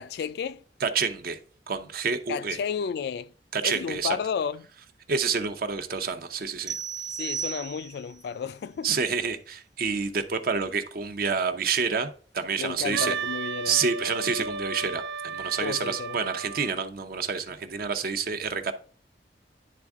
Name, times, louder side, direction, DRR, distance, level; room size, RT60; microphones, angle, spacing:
voice 1, 0.0-0.6 2.3-3.3 3.6-4.7 7.1-9.0 12.6-13.8 15.6-16.2, left 6 dB, 65° left, 0.3 m, -32 dB
voice 2, 0.8-1.4 1.7-2.6 3.5-4.2 5.1-6.8 8.8-13.1 13.6-18.7, right 5 dB, 55° right, 0.7 m, -28 dB
sound 1, 6.7-8.2, right 7 dB, 25° right, 0.8 m, -34 dB
Wind instrument woodwind instrument, 12.9-16.8, right 5 dB, 85° right, 0.3 m, -34 dB
10.0 x 3.5 x 3.6 m
head